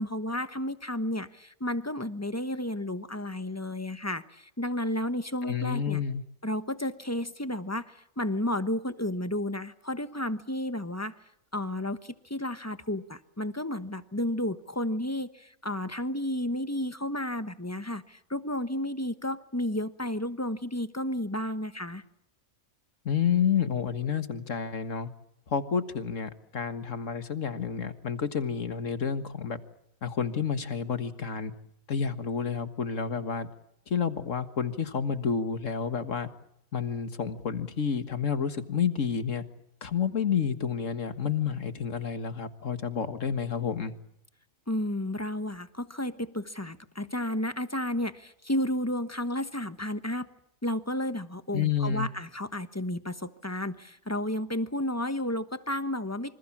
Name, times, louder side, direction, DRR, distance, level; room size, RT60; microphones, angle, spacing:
voice 1, 0.0-6.0 6.4-11.1 11.5-22.0 44.7-50.3 50.6-56.3, left 1 dB, 10° left, 11 dB, 1.1 m, -32 dB
voice 2, 5.4-6.2 23.1-25.1 25.5-29.6 30.0-31.5 31.9-33.5 33.9-36.3 36.7-39.4 39.8-43.9 51.5-52.1, left 7 dB, 65° left, 10 dB, 1.9 m, -29 dB
27.5 x 26.0 x 7.4 m, 0.78 s
omnidirectional pair, 1.4 m